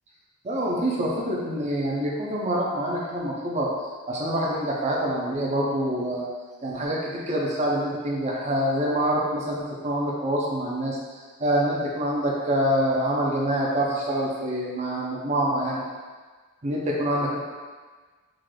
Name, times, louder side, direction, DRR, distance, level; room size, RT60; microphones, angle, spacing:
voice 1, 0.4-3.7 4.1-6.3 6.6-15.8 16.6-17.4, right 1 dB, 30° right, -3 dB, 0.5 m, -26 dB
3.7 x 2.4 x 3.2 m, 1.4 s
head